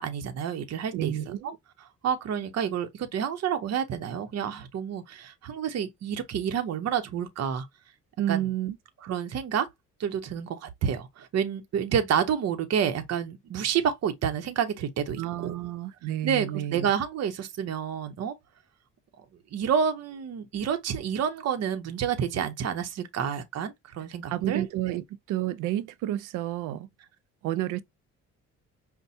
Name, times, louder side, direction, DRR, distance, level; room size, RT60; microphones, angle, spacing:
voice 1, 0.0-1.1 2.0-7.7 8.3-8.5 9.0-9.7 10.0-15.5 16.2-18.3 19.5-25.0, right 8 dB, 55° right, 0.7 m, -29 dB
voice 2, 0.9-1.6 8.2-8.7 15.2-16.9 24.3-26.9 27.4-27.8, right 13 dB, 90° right, 0.5 m, -30 dB
5.4 x 2.1 x 2.6 m
cardioid pair, 90°, 30 cm